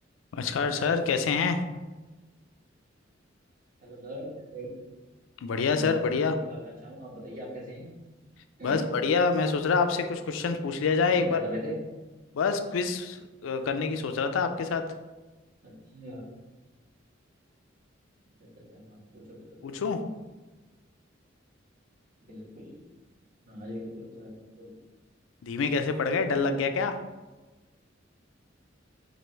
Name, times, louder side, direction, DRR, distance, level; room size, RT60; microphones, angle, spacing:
voice 1, 0.3-1.6 5.4-6.3 8.6-11.4 12.3-14.8 19.6-20.0 25.4-27.0, left 5 dB, 90° left, 7 dB, 0.4 m, -26 dB
voice 2, 3.8-4.8 5.7-7.9 8.6-8.9 11.1-11.8 15.6-16.2 18.7-19.4 19.7-19.8 22.2-22.8 23.5-24.7, equal, 45° right, -6 dB, 1.3 m, -40 dB
4.6 x 2.5 x 3.1 m, 1.2 s
head